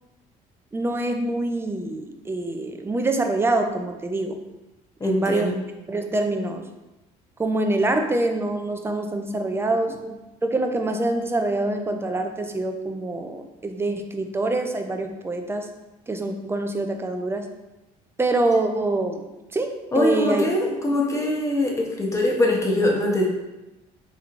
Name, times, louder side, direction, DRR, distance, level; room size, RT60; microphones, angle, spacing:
voice 1, 0.7-4.4 5.0-5.5 5.9-6.6 7.4-10.0 10.4-15.7 16.1-17.5 18.2-19.2 19.5-20.4, right 2 dB, 15° right, 5 dB, 0.4 m, -25 dB
voice 2, 5.0-5.6 10.0-10.1 19.9-23.3, left 1 dB, 20° left, -1 dB, 0.7 m, -22 dB
3.4 x 3.1 x 2.4 m, 1.0 s
cardioid pair, 95°, 16 cm